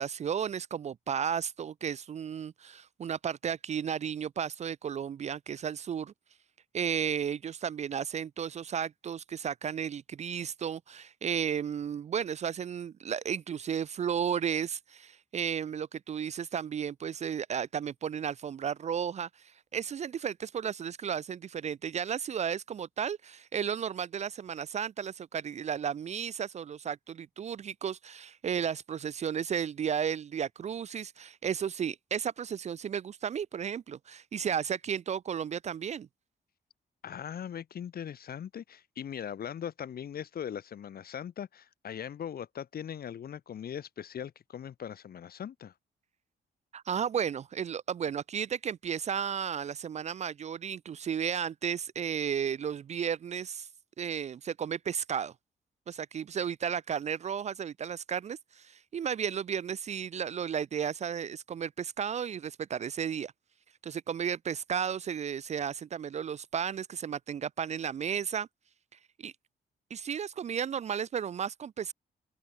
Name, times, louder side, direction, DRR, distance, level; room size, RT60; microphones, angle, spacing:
voice 1, 0.0-6.1 6.7-36.1 46.7-53.7 54.0-55.3 55.9-63.3 63.8-68.5 69.2-69.3 69.9-71.9, right 8 dB, 40° right, 0.4 m, -33 dB
voice 2, 37.0-45.7, left 9 dB, 65° left, 5.2 m, -40 dB
wide cardioid pair, 155°, 17 cm